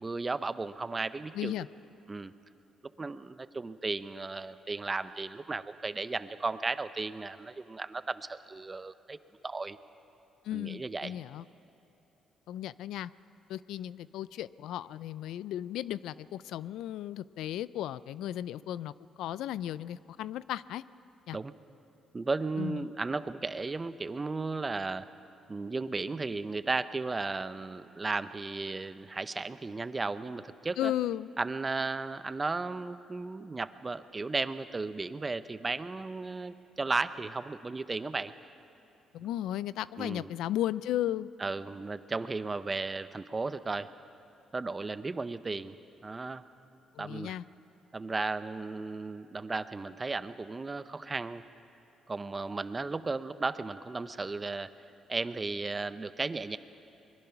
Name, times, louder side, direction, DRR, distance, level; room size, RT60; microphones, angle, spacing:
voice 1, 0.0-1.5 2.1-2.3 3.0-9.2 9.4-9.8 10.5-11.1 21.3-21.5 22.1-25.1 25.5-30.9 31.4-38.3 40.0-40.3 41.4-43.9 44.5-45.7 46.0-46.4 47.0-47.3 47.9-51.4 52.1-54.7 55.1-56.6, right 3 dB, 25° right, 13 dB, 0.8 m, -35 dB
voice 2, 1.3-1.7 10.4-11.4 12.5-13.1 13.5-20.8 21.3-21.4 22.6-22.9 30.8-31.3 39.1-41.3 46.9-47.4, left 12 dB, 85° left, 18 dB, 0.4 m, -35 dB
23.5 x 22.0 x 5.9 m, 2.9 s
cardioid pair, 90°, 0 cm